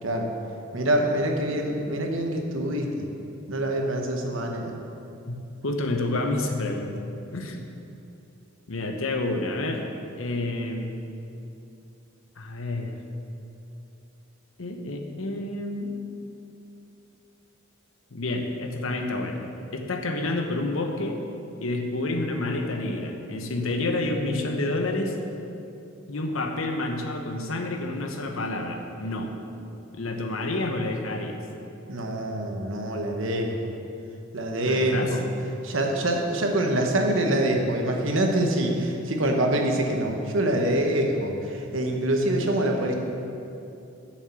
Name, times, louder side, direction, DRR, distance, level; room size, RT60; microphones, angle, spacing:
voice 1, 0.7-3.1 3.5-4.7 31.9-33.5 34.3-35.2 35.6-42.9, right 1 dB, 70° right, 2 dB, 1.1 m, -25 dB
voice 2, 5.6-6.9 7.3-7.6 8.7-9.9 10.2-11.0 12.4-12.9 14.6-15.9 18.1-19.4 19.7-21.3 21.6-25.2 26.1-29.3 29.9-31.4 34.6-35.2, left 2 dB, 90° left, 4 dB, 1.0 m, -29 dB
7.3 x 6.4 x 7.0 m, 2.7 s
head